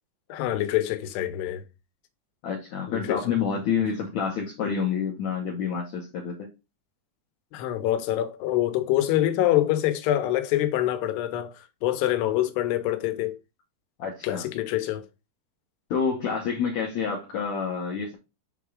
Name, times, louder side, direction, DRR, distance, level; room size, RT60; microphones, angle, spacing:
voice 1, 0.3-1.6 2.9-3.2 7.5-13.4 14.2-15.1, left 13 dB, 85° left, 2.9 m, -25 dB
voice 2, 2.4-6.5 14.0-14.5 15.9-18.2, left 6 dB, 65° left, 1.9 m, -28 dB
7.0 x 3.6 x 4.8 m
omnidirectional pair, 4.6 m